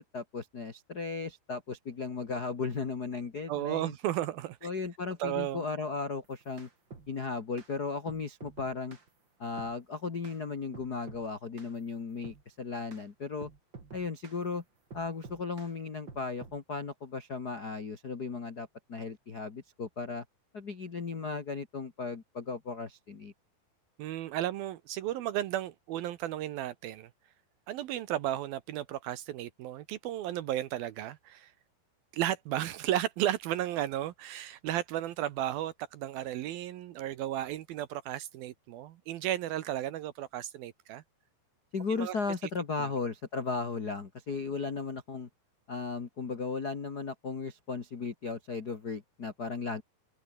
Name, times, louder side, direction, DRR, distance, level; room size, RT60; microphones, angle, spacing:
voice 1, 0.0-3.9 4.6-6.7 7.1-9.0 9.4-13.5 13.9-14.6 14.9-20.2 20.5-23.3 41.7-45.3 45.7-49.8, left 4 dB, 55° left, 1.0 m, -36 dB
voice 2, 3.5-4.7 5.2-5.6 24.0-27.1 27.7-31.5 32.1-41.0 41.9-42.1 42.8-42.9, right 13 dB, 70° right, 2.5 m, -34 dB
sound 1, 6.2-7.1 7.6-7.7 8.1-9.1 9.6-9.8 10.2-10.4 10.7-11.3 11.6-11.8 12.2-12.4 12.9-13.0 13.4-14.4 14.9-15.7 16.1-16.6, right 4 dB, 30° right, 3.4 m, -49 dB
open air
omnidirectional pair, 5.0 m